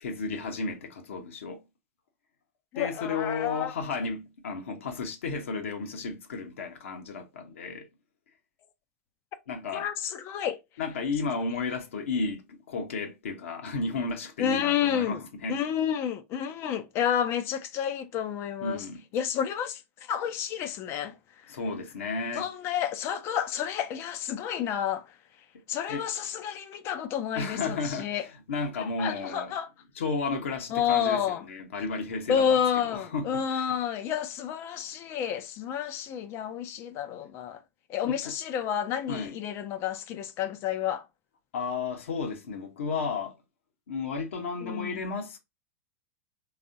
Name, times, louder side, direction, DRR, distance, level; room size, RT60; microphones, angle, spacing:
voice 1, 0.0-1.6 2.7-7.9 9.5-9.9 10.8-15.6 18.6-19.0 21.5-22.5 25.9-26.0 27.3-28.1 28.5-29.5 30.0-31.2 31.5-33.8 38.0-38.3 39.1-39.3 41.5-43.4 43.9-45.4, left 4 dB, 60° left, 0.9 m, -33 dB
voice 2, 2.7-3.7 9.7-10.6 14.4-15.2 15.5-18.9 19.1-21.6 22.3-25.1 25.7-28.3 28.8-29.7 30.7-31.5 32.3-37.6 37.9-41.1 44.6-45.0, left 9 dB, 35° left, 0.5 m, -30 dB
4.1 x 3.4 x 2.5 m
figure-of-eight pair, 90°, 8 cm